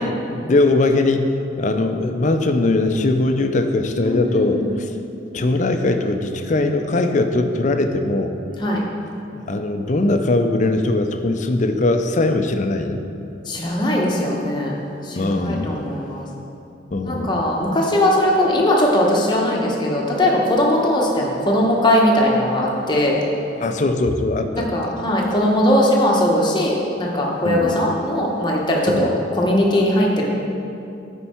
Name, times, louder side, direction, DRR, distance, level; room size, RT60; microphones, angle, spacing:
voice 1, 0.0-5.0 5.3-8.3 9.3-13.0 15.1-16.2 16.9-17.4 23.6-24.9 27.4-27.8 28.9-29.1, left 2 dB, 40° left, 7 dB, 0.4 m, -21 dB
voice 2, 4.0-4.7 8.6-8.8 13.5-14.8 15.0-16.2 17.1-23.2 24.5-30.3, left 1 dB, 25° left, -2 dB, 1.0 m, -19 dB
9.7 x 4.6 x 4.3 m, 2.8 s
head